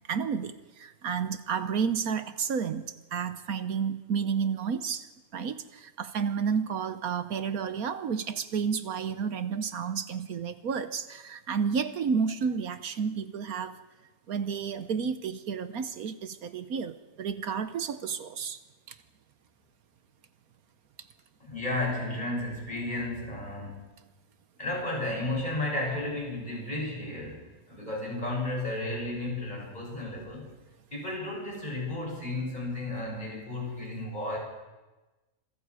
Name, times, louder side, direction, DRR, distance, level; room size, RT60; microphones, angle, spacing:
voice 1, 0.1-13.8 14.3-18.6 18.9-19.0, right 6 dB, 80° right, 11 dB, 1.4 m, -31 dB
voice 2, 21.4-23.9 24.6-30.5 30.9-34.4, left 2 dB, 30° left, -2 dB, 8.1 m, -33 dB
26.5 x 23.5 x 5.0 m, 1.2 s
omnidirectional pair, 1.5 m